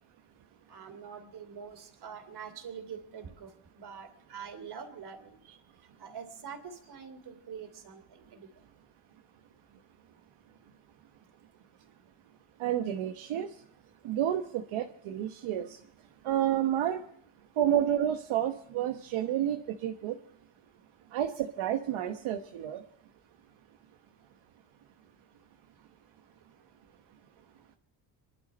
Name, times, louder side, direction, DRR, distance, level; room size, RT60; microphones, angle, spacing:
voice 1, 0.7-5.4 6.0-8.5, right 7 dB, 50° right, 7 dB, 3.1 m, -45 dB
voice 2, 12.6-13.5 14.0-15.8 16.2-17.0 17.6-20.2 21.1-22.8, right 11 dB, 75° right, 4 dB, 1.2 m, -30 dB
26.0 x 11.5 x 4.3 m, 0.72 s
cardioid pair, 120°, 49 cm